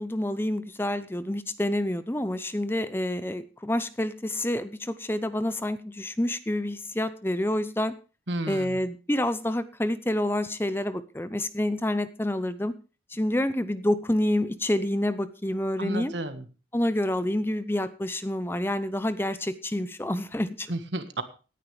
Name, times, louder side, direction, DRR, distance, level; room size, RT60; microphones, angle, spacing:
voice 1, 0.0-7.9 8.5-12.7 13.1-16.1 16.7-20.7, left 1 dB, 10° left, 13 dB, 0.6 m, -28 dB
voice 2, 8.3-8.8 15.8-16.5 20.7-21.2, right 1 dB, 80° right, 10 dB, 1.5 m, -32 dB
18.0 x 10.0 x 3.3 m, 0.34 s
head